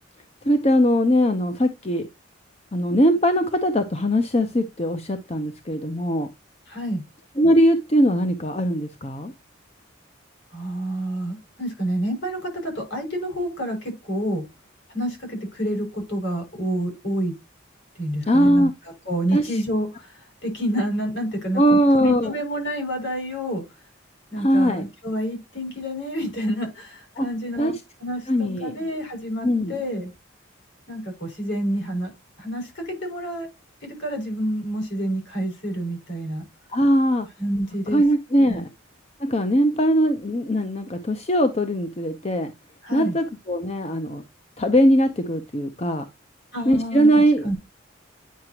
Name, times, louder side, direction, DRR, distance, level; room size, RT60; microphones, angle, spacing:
voice 1, 0.4-2.1 2.7-6.3 7.4-9.3 18.3-18.7 19.3-19.6 21.6-22.3 24.4-24.9 27.2-27.3 27.6-27.7 28.3-28.7 29.4-29.8 36.7-37.3 37.9-38.7 39.2-42.5 42.9-44.2 44.6-46.1 46.7-47.5, equal, 30° left, 0.7 m, -20 dB
voice 2, 6.7-7.0 10.5-14.4 14.9-17.3 18.0-18.7 19.1-23.6 24.3-30.1 30.9-32.1 32.4-33.5 33.8-36.4 37.4-38.0 38.5-38.6 42.8-43.1 46.5-47.1 47.4-47.5, equal, 65° left, 5.9 m, -28 dB
9.3 x 5.9 x 2.9 m
head